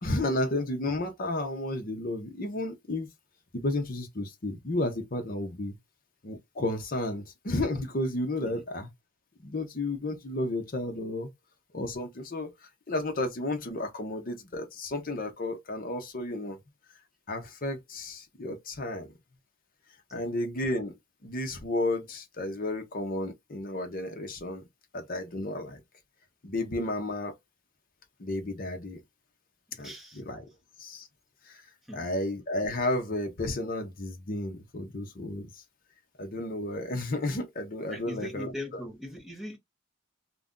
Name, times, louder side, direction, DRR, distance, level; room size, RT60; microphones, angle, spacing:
voice 1, 0.0-3.1 3.5-5.8 6.2-8.9 9.4-11.3 11.7-12.5 12.9-16.6 17.3-19.1 20.1-20.9 21.2-24.6 24.9-25.8 26.4-27.3 28.2-29.0 29.8-30.5 30.8-31.1 31.5-31.6 31.9-35.6 36.2-38.8, left 1 dB, 40° left, 0.7 m, -32 dB
voice 2, 29.7-30.2 31.9-32.1 37.9-39.6, left 1 dB, ahead, 0.8 m, -41 dB
2.5 x 2.2 x 3.6 m
head